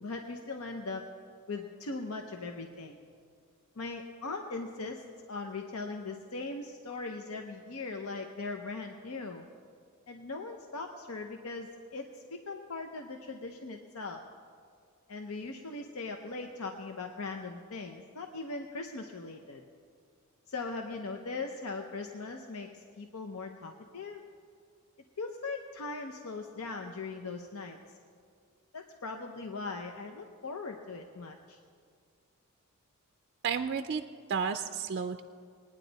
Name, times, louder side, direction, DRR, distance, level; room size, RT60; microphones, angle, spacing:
voice 1, 0.0-1.0 1.5-3.0 3.8-9.5 10.1-14.2 15.1-19.6 20.5-24.2 25.2-27.8 28.7-31.6, left 3 dB, 75° left, 4 dB, 0.8 m, -40 dB
voice 2, 33.4-34.0 34.3-35.2, right 6 dB, 50° right, 8 dB, 0.4 m, -32 dB
21.0 x 9.8 x 4.0 m, 2.2 s
head